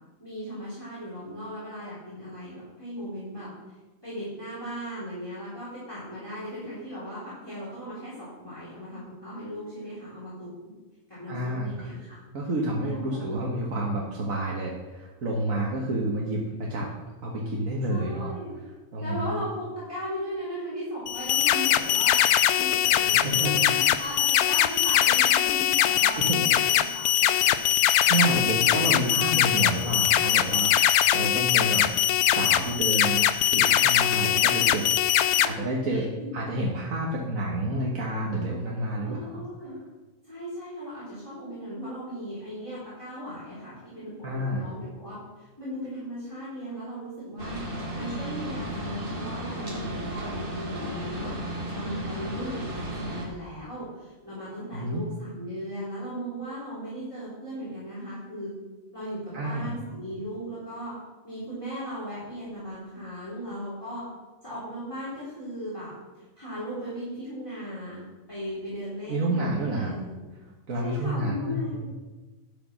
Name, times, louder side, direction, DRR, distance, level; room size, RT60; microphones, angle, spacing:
voice 1, 0.2-3.5 4.0-10.5 11.1-12.2 12.8-13.2 17.9-18.5 19.0-22.2 22.5-27.6 28.3-29.6 35.0-35.5 35.9-36.3 39.0-39.8 40.2-47.6 47.9-51.3 51.7-58.5 58.9-60.9 61.2-64.0 64.4-70.2 70.8-71.9, equal, 15° left, -10 dB, 3.8 m, -37 dB
voice 2, 11.3-11.9 12.3-16.9 17.2-18.3 18.9-19.4 22.8-23.5 26.2-26.4 28.1-30.7 31.1-31.9 32.3-34.8 35.4-39.4 44.2-44.7 54.7-55.0 59.3-59.8 69.1-69.9 70.7-71.9, right 1 dB, 65° right, -2 dB, 1.7 m, -29 dB
sound 1, 21.1-35.5, left 11 dB, 90° left, 1.1 m, -22 dB
sound 2, 47.4-53.3, equal, 40° right, 2.0 m, -34 dB
11.0 x 6.0 x 6.1 m, 1.2 s
omnidirectional pair, 1.5 m